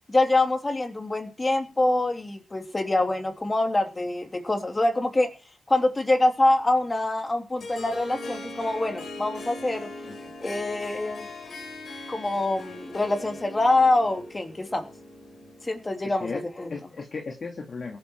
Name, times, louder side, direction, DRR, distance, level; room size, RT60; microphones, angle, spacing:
voice 1, 0.1-5.3 5.7-9.9 10.4-11.3 12.1-14.9 15.6-16.7, left 2 dB, 25° left, 3.0 m, -25 dB
Harp, 7.6-16.0, left 2 dB, 65° left, 4.4 m, -40 dB
voice 2, 16.0-16.4 16.7-18.0, left 4 dB, 50° left, 2.4 m, -36 dB
17.0 x 11.0 x 4.6 m
supercardioid pair, 50°, 0 cm